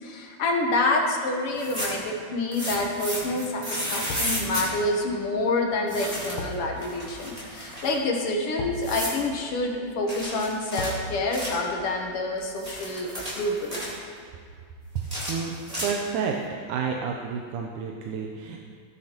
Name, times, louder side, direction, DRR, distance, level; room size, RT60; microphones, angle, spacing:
voice 1, 0.0-13.8, left 2 dB, 65° left, 1 dB, 1.6 m, -27 dB
sound 1, 1.5-2.1 2.5-4.7 5.9-6.5 6.8-8.0 8.8-9.2 10.1-11.7 12.4-14.0 15.0-16.2, equal, 10° right, 2.8 m, -33 dB
sound 2, 2.3-2.7 4.1-15.1 15.4-15.6, left 2 dB, 80° left, 1.3 m, -42 dB
voice 2, 15.0-16.4 16.7-18.6, right 6 dB, 85° right, 1 dB, 2.2 m, -30 dB
15.5 x 9.6 x 2.9 m, 2.1 s
omnidirectional pair, 3.5 m